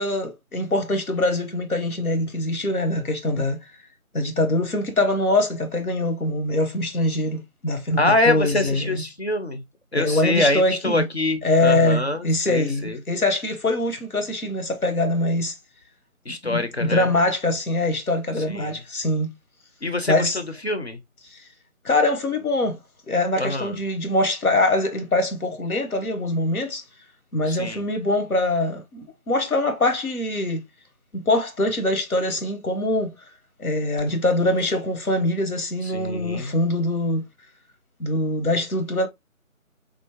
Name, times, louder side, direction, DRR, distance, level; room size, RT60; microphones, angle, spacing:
voice 1, 0.0-3.6 4.1-9.0 9.9-11.1 11.4-15.5 16.4-19.3 20.1-20.4 21.3-21.4 21.8-22.8 23.1-26.8 27.3-30.6 31.1-33.1 33.6-37.2 38.0-39.1, left 2 dB, 90° left, 1.0 m, -23 dB
voice 2, 8.0-9.6 9.9-13.0 16.3-17.1 18.5-18.8 19.8-21.0 23.4-23.8 27.5-27.8 34.1-34.2 35.9-36.5, left 2 dB, 50° left, 0.5 m, -25 dB
3.4 x 2.0 x 2.9 m
figure-of-eight pair, 160°, 42 cm